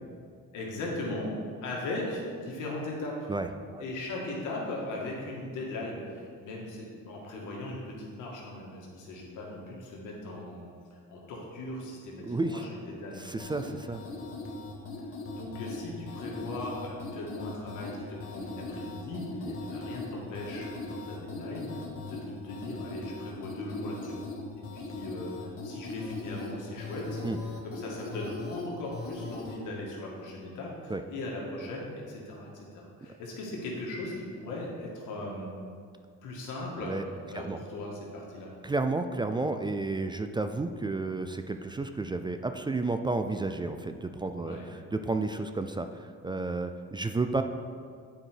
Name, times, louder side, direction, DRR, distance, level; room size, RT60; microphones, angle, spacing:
voice 1, 0.5-1.3 1.6-3.3 3.8-13.3 15.0-15.1 15.3-24.1 24.7-27.2 27.6-35.5 36.2-36.9 37.3-38.5 44.4-44.7, left 2 dB, 90° left, -2 dB, 1.7 m, -38 dB
voice 2, 3.3-3.8 12.2-12.6 13.2-14.0 19.5-19.6 27.2-27.4 30.9-31.0 36.9-37.0 37.3-37.6 38.6-47.4, right 3 dB, 15° right, 7 dB, 0.3 m, -32 dB
sound 1, 13.4-29.6, left 3 dB, 50° left, 1.4 m, -39 dB
8.8 x 4.7 x 4.5 m, 2.1 s
cardioid pair, 90°, 30 cm